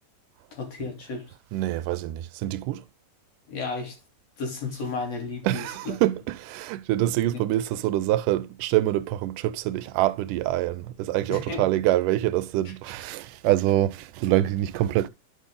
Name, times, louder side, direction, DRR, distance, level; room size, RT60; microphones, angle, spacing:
voice 1, 0.5-1.3 3.5-4.0 4.4-5.9 11.3-11.6, left 4 dB, 55° left, 3.7 m, -33 dB
voice 2, 1.5-2.8 5.4-15.1, right 14 dB, 85° right, 2.2 m, -25 dB
11.0 x 5.2 x 3.7 m
omnidirectional pair, 3.6 m